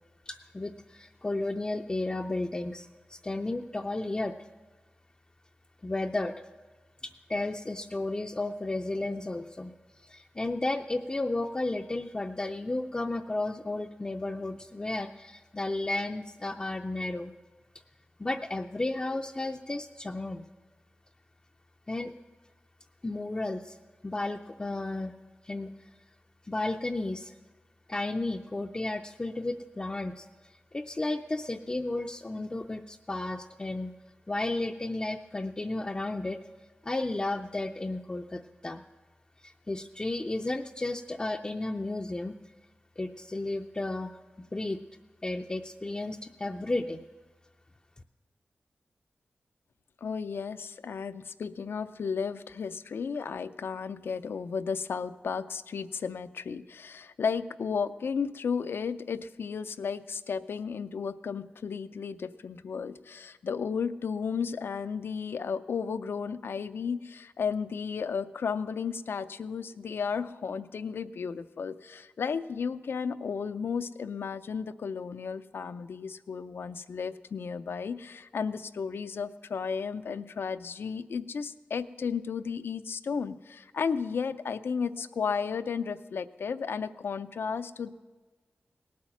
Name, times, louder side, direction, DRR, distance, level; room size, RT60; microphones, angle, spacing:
voice 1, 0.3-4.3 5.8-6.3 7.0-9.7 10.0-17.3 18.2-20.5 21.9-22.1 23.0-23.8 24.0-25.1 25.4-25.7 26.5-27.3 27.9-30.3 30.7-33.9 34.3-36.4 36.8-38.8 39.4-42.3 43.0-44.2 44.5-44.8 45.2-47.0, left 2 dB, 25° left, 3 dB, 0.4 m, -33 dB
voice 2, 50.0-87.9, left 6 dB, 85° left, 13 dB, 0.5 m, -33 dB
18.0 x 8.6 x 6.0 m, 1.3 s
wide cardioid pair, 100°, 4 cm